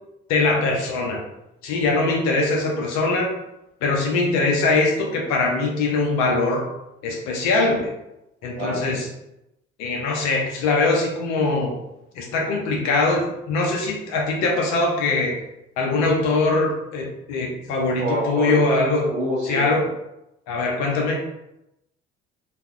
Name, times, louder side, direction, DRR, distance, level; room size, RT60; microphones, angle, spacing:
voice 1, 0.3-1.2 1.6-3.3 3.8-6.7 7.0-7.9 8.4-9.1 9.8-11.7 12.2-15.4 15.8-19.1 19.4-19.9 20.5-21.2, left 3 dB, 55° left, -1 dB, 0.6 m, -22 dB
voice 2, 18.0-18.8 19.1-19.7, right 1 dB, 85° right, -3 dB, 0.7 m, -26 dB
2.7 x 2.0 x 2.3 m, 0.87 s
figure-of-eight pair, 50°, 34 cm